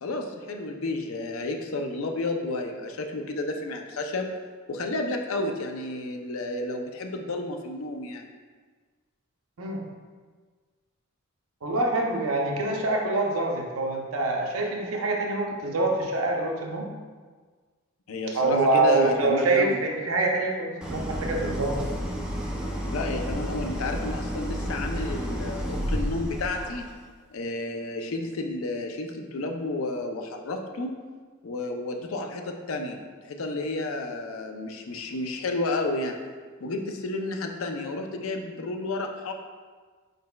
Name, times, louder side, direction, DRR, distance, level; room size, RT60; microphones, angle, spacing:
voice 1, 0.0-4.3 4.7-8.3 18.1-19.8 22.9-26.9 27.3-30.9 31.4-36.2 36.6-39.3, left 2 dB, 65° left, 4 dB, 0.5 m, -31 dB
voice 2, 11.6-16.9 18.3-21.8, right 2 dB, 75° right, 0 dB, 0.7 m, -25 dB
Idling, 20.8-26.9, equal, 5° right, 0.5 m, -31 dB
5.1 x 4.0 x 2.2 m, 1.5 s
head